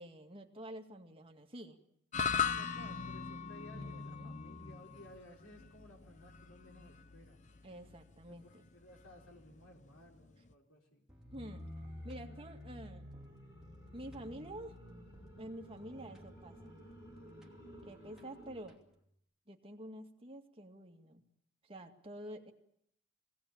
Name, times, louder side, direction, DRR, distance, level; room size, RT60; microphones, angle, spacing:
voice 1, 0.0-1.8 3.7-4.4 7.6-8.6 11.3-11.6 12.0-13.1 13.9-14.8 15.4-16.6 17.8-18.8 19.5-21.2 21.6-22.5, right 1 dB, 25° right, 3 dB, 2.1 m, -48 dB
sound 1, 2.1-10.5, left 6 dB, 35° left, 0.9 m, -40 dB
voice 2, 2.2-7.4 8.3-11.1, left 1 dB, 90° left, 0 dB, 4.4 m, -57 dB
sound 2, 11.1-18.8, left 1 dB, 55° left, 6.2 m, -51 dB
sound 3, 11.1-19.2, right 1 dB, 5° right, 2.9 m, -64 dB
22.5 x 18.0 x 8.7 m, 0.73 s
head